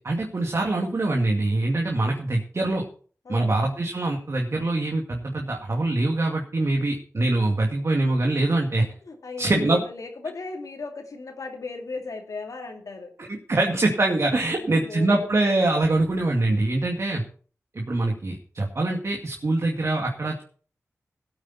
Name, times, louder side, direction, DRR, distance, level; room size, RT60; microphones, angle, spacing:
voice 1, 0.0-2.8 3.3-8.8 9.4-9.8 13.3-17.2 17.7-20.4, right 2 dB, 55° right, 0 dB, 2.4 m, -24 dB
voice 2, 3.2-3.6 8.4-8.5 9.0-13.1 14.5-15.4 17.1-17.2, left 3 dB, 75° left, 2 dB, 2.5 m, -36 dB
17.5 x 8.7 x 4.3 m, 0.43 s
cardioid pair, 55°, 6 cm